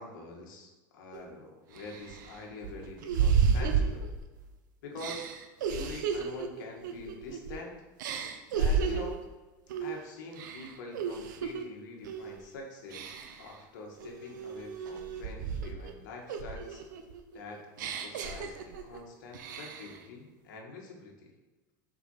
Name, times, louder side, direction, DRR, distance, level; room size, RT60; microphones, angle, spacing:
voice 1, 0.0-4.1 4.8-5.3 5.6-7.8 8.5-9.2 9.8-16.8 17.3-21.3, left 3 dB, 75° left, 0 dB, 1.9 m, -45 dB
sound 1, 1.1-1.2 1.8-4.5 5.0-7.6 8.0-9.2 9.7-10.0 10.3-11.6 12.0-12.4 12.9-13.5 14.0-15.9 16.3-19.0 19.3-20.0, right 6 dB, 80° right, 0.8 m, -32 dB
6.0 x 5.3 x 5.7 m, 1.2 s
hypercardioid pair, 95°, 10 cm